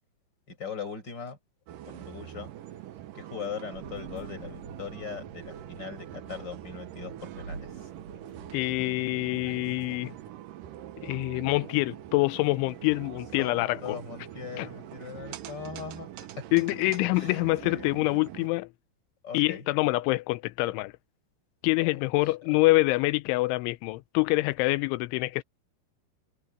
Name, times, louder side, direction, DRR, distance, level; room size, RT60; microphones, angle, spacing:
voice 1, 0.5-1.4 1.9-2.5 3.1-7.9 13.4-16.5 17.1-17.9 19.2-19.7 21.8-22.6, left 6 dB, 20° left, 6.0 m, -40 dB
sound 1, 1.7-18.5, right 12 dB, 85° right, 1.8 m, -44 dB
sound 2, 3.7-10.3, right 3 dB, 40° right, 7.5 m, -48 dB
voice 2, 8.5-10.1 11.0-13.8 14.6-14.7 16.5-18.7 19.3-20.9 21.6-25.4, left 22 dB, 90° left, 3.1 m, -26 dB
omnidirectional pair, 5.4 m